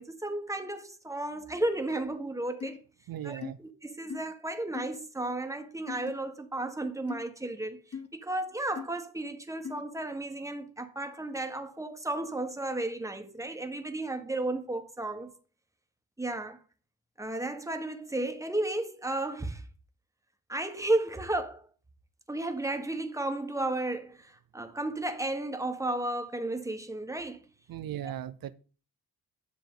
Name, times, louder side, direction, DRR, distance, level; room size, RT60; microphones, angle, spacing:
voice 1, 0.0-2.8 3.2-3.4 3.8-7.8 8.1-15.3 16.2-16.6 17.2-19.6 20.5-21.7 22.3-27.4, right 2 dB, 10° right, 1.4 m, -33 dB
sound 1, 2.6-2.8 3.4-3.5 4.1-4.2 4.7-5.0 5.9-6.1 7.1-7.2 7.9-8.1 8.8-8.9 9.6-9.8, left 6 dB, 45° left, 1.1 m, -39 dB
voice 2, 3.1-3.6 27.7-28.5, right 11 dB, 80° right, 0.7 m, -37 dB
10.5 x 6.9 x 3.9 m
cardioid pair, 80°, 35 cm